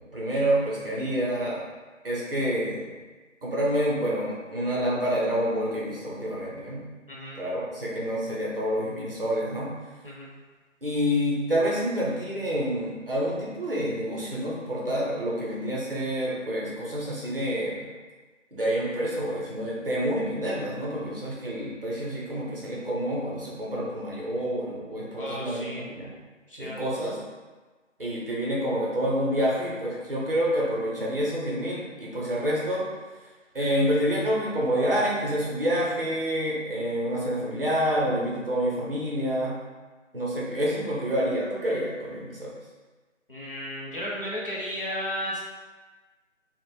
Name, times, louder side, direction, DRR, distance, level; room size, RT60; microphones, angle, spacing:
voice 1, 0.1-1.6 2.0-2.9 3.4-6.8 7.4-9.7 10.8-17.8 18.5-26.1 26.6-27.1 28.0-32.8 33.5-39.6 40.1-42.5, equal, 45° right, -6 dB, 0.6 m, -28 dB
voice 2, 7.1-7.4 10.0-10.3 25.1-25.9 26.5-27.1 43.3-45.4, equal, 45° left, -6 dB, 0.5 m, -34 dB
2.0 x 2.0 x 3.1 m, 1.3 s
figure-of-eight pair, 160°, 39 cm